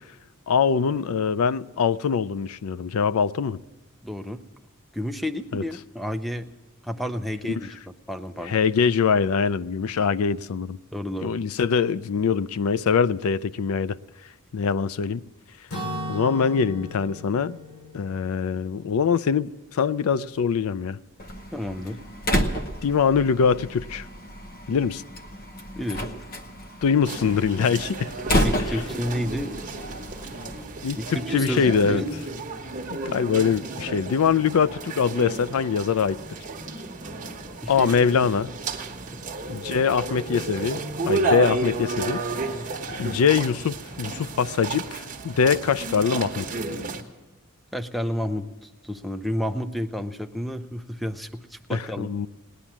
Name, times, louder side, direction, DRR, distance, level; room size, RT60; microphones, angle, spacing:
voice 1, 0.5-3.6 5.5-5.6 8.4-10.8 11.2-14.0 14.5-15.2 16.1-17.6 17.9-21.0 22.8-24.1 24.7-25.0 26.8-28.1 28.7-28.8 30.8-32.0 32.9-36.2 37.7-38.5 39.5-42.2 43.0-46.5 51.7-52.3, left 6 dB, 70° left, 0.4 m, -23 dB
voice 2, 4.0-4.4 4.9-6.5 6.8-8.5 10.9-11.3 21.5-22.0 25.8-26.1 28.4-29.6 30.9-32.1 37.6-37.9 47.7-52.1, equal, ahead, 0.5 m, -31 dB
Acoustic guitar / Strum, 15.7-19.7, left 1 dB, 85° left, 2.5 m, -37 dB
Slam, 21.2-30.6, equal, 40° left, 1.0 m, -30 dB
sound 1, 27.0-47.0, right 3 dB, 35° right, 1.2 m, -32 dB
18.5 x 10.0 x 7.3 m
head